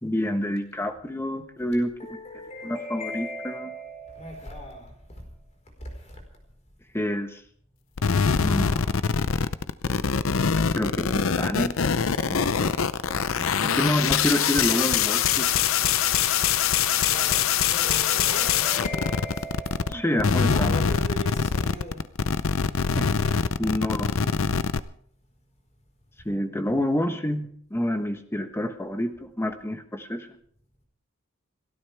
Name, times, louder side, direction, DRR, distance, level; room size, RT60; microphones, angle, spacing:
voice 1, 0.0-2.2 2.6-3.7 6.9-7.4 8.4-9.0 10.7-11.8 12.3-12.7 13.6-15.9 19.9-20.8 23.0-24.3 26.2-30.3, left 1 dB, 10° left, 7 dB, 1.2 m, -28 dB
voice 2, 2.0-5.5 5.8-6.2 17.1-22.0, left 1 dB, 35° left, 3 dB, 4.6 m, -38 dB
sound 1, 8.0-19.9 20.2-24.8, left 7 dB, 80° left, 0.6 m, -24 dB
29.5 x 13.0 x 3.5 m, 0.62 s
head